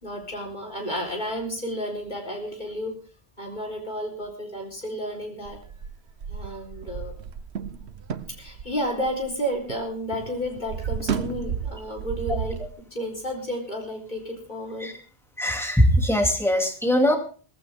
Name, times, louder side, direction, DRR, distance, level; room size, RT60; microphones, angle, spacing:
voice 1, 0.0-3.0 3.4-5.6 6.3-7.1 8.4-12.6 12.9-15.0, equal, 45° left, 0 dB, 4.4 m, -32 dB
sound 1, 5.5-9.9 10.1-12.7, right 7 dB, 80° right, 1.2 m, -33 dB
voice 2, 15.4-17.2, equal, ahead, 3 dB, 2.6 m, -21 dB
18.0 x 15.5 x 3.7 m, 0.40 s
omnidirectional pair, 1.1 m